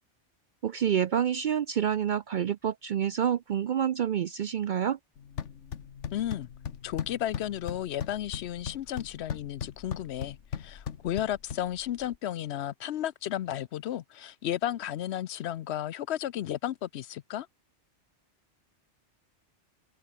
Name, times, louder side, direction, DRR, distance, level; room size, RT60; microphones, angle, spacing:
voice 1, 0.6-5.0, right 9 dB, 60° right, 0.5 m, -28 dB
sound 1, 5.2-12.2, left 7 dB, 85° left, 1.5 m, -39 dB
voice 2, 6.1-6.5 6.8-17.5, left 11 dB, 70° left, 0.8 m, -33 dB
open air
omnidirectional pair, 1.2 m